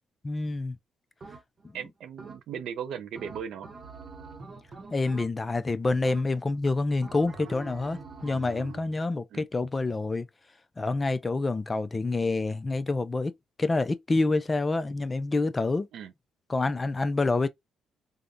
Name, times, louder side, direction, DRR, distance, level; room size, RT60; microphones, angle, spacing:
voice 1, 0.2-0.8 4.9-10.3 10.8-13.3 13.6-15.9 16.5-17.5, left 3 dB, 25° left, 0.4 m, -27 dB
sound 1, 1.2-1.7 2.2-2.7 3.2-5.6 6.0-6.6 7.0-9.0, right 4 dB, 40° right, 0.8 m, -45 dB
voice 2, 1.7-3.7 9.3-9.5 15.9-16.1, right 8 dB, 75° right, 0.5 m, -37 dB
3.6 x 2.1 x 2.5 m
cardioid pair, 90°, 0 cm